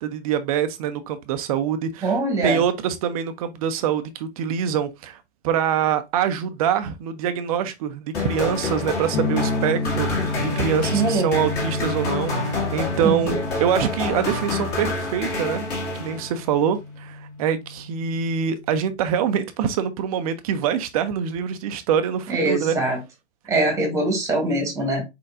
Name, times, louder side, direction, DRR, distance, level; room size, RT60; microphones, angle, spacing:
voice 1, 0.0-5.2 5.4-15.6 16.0-22.8, right 8 dB, 30° right, 0.6 m, -25 dB
voice 2, 2.0-2.6 10.9-11.3 13.0-13.1 22.3-23.0 23.5-25.0, right 2 dB, 10° right, 1.4 m, -22 dB
sound 1, 8.1-16.5, left 2 dB, 30° left, 2.0 m, -28 dB
sound 2, 9.1-18.9, left 3 dB, 50° left, 1.0 m, -31 dB
4.5 x 4.2 x 2.5 m
hypercardioid pair, 130°, 35 cm